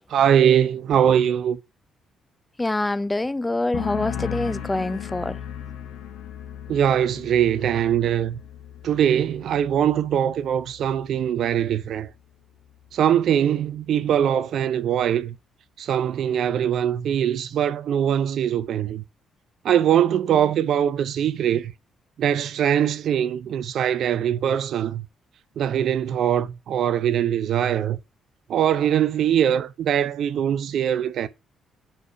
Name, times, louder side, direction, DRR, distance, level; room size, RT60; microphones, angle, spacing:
voice 1, 0.1-1.6 6.7-8.4 8.8-12.1 12.9-15.3 15.8-19.0 19.6-21.7 22.2-25.0 25.6-28.0 28.5-31.3, right 9 dB, 65° right, 0.5 m, -22 dB
voice 2, 2.6-5.4, left 2 dB, 20° left, 0.4 m, -25 dB
sound 1, 3.7-11.2 11.5-12.0, left 9 dB, 70° left, 0.7 m, -37 dB
4.6 x 4.2 x 5.5 m
hypercardioid pair, 45°, 0 cm